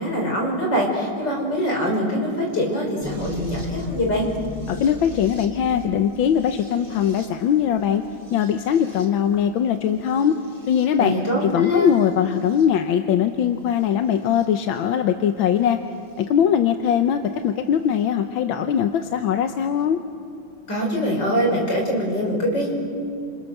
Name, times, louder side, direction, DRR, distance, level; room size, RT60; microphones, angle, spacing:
voice 1, 0.0-4.3 11.0-11.9 20.7-22.7, equal, 60° left, 0 dB, 5.6 m, -23 dB
sound 1, 3.0-11.2 11.9-12.7 13.8-14.5 16.2-16.3 18.0-18.1, left 1 dB, 10° right, 2.2 m, -39 dB
voice 2, 4.7-8.0 8.3-10.3 10.7-11.2 11.4-15.8 16.2-20.0, left 9 dB, 85° left, 7 dB, 1.7 m, -21 dB
29.5 x 28.0 x 6.7 m, 2.4 s
omnidirectional pair, 2.1 m